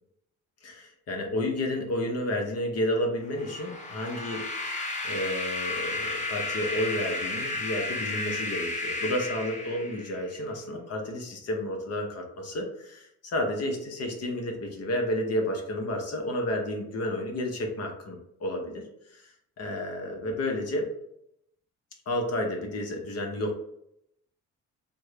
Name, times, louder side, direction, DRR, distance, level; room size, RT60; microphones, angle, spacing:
voice 1, 0.6-4.7 5.0-18.8 19.1-19.3 19.6-20.9 22.1-23.5, left 1 dB, 55° left, 2 dB, 0.9 m, -31 dB
sound 1, 3.3-10.3, left 2 dB, 25° left, 1.0 m, -33 dB
3.5 x 2.2 x 3.2 m, 0.77 s
cardioid pair, 90°, 30 cm